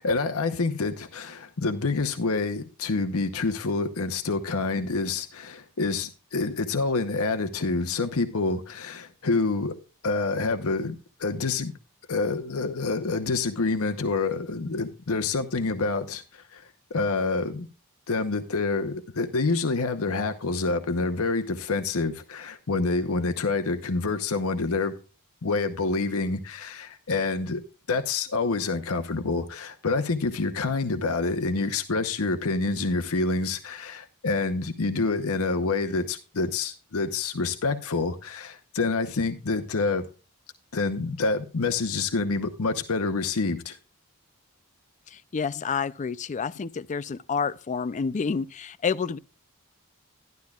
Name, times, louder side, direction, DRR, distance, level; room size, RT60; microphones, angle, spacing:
voice 1, 0.0-9.8 10.0-11.7 12.1-17.7 18.1-24.9 25.4-27.6 27.9-40.0 40.7-43.8, left 3 dB, 70° left, 0.9 m, -27 dB
voice 2, 45.1-49.2, left 5 dB, 35° left, 0.4 m, -29 dB
12.0 x 12.0 x 2.3 m
head